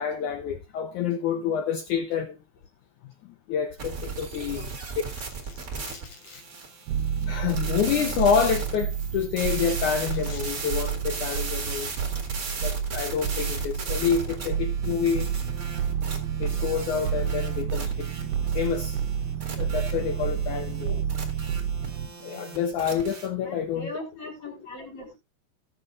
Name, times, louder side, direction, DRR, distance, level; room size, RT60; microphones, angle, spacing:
voice 1, 0.0-2.4 3.5-4.6 7.2-11.9 12.6-15.3 16.4-18.3 18.5-19.0 19.6-20.9 22.2-23.9, left 7 dB, 85° left, 1.7 m, -28 dB
sound 1, 3.8-23.3, right 4 dB, 40° right, 1.3 m, -37 dB
voice 2, 4.4-4.7 20.8-21.0 23.4-25.2, left 2 dB, 35° left, 4.6 m, -40 dB
Domestic sounds home sounds, 5.1-6.4 7.5-8.6 10.0-10.5 11.8-12.0 12.9-13.3, left 4 dB, 60° left, 4.3 m, -47 dB
sound 2, 6.9-22.1, right 8 dB, 80° right, 2.1 m, -30 dB
18.0 x 8.2 x 2.4 m
omnidirectional pair, 4.6 m